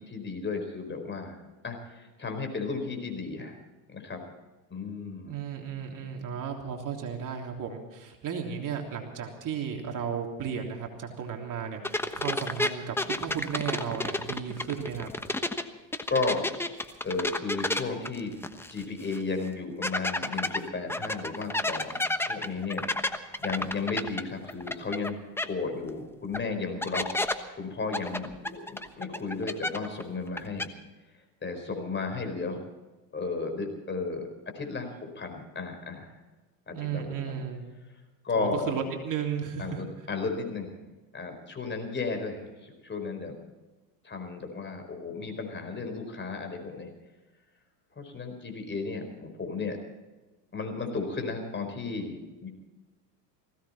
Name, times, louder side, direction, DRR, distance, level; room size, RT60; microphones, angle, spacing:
voice 1, 0.0-1.4 1.6-3.6 3.9-4.2 4.7-5.4 16.1-16.5 17.0-18.3 18.7-22.0 22.3-25.2 25.4-30.7 31.4-32.6 33.1-34.3 34.5-36.1 36.7-37.4 38.2-38.7 39.6-40.8 41.1-43.3 44.0-46.9 47.9-49.8 50.5-52.5, left 4 dB, 20° left, 5 dB, 4.6 m, -34 dB
voice 2, 5.3-15.1 36.7-37.6 38.3-39.8, right 7 dB, 40° right, 2 dB, 3.3 m, -34 dB
sound 1, 11.8-15.6 15.9-18.8 19.1-19.2 19.8-25.1 25.4-25.5 26.3-26.4 26.8-27.3 27.9-30.0 30.3-30.7, left 1 dB, 5° left, 1.1 m, -30 dB
20.0 x 16.5 x 4.3 m, 1.2 s
hypercardioid pair, 95°, 50 cm